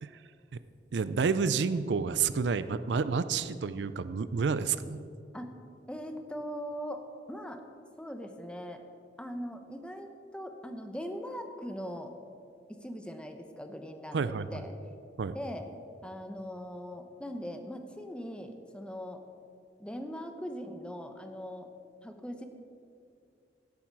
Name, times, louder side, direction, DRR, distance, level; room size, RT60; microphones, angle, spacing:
voice 1, 0.9-5.0 14.1-14.5 15.2-15.4, right 5 dB, 80° right, 14 dB, 0.4 m, -29 dB
voice 2, 5.9-7.6 8.0-8.8 9.2-12.1 12.8-14.7 15.3-15.7 16.0-19.2 19.8-21.7 22.0-22.5, equal, 5° left, 6 dB, 0.8 m, -40 dB
16.0 x 8.6 x 4.7 m, 2.5 s
head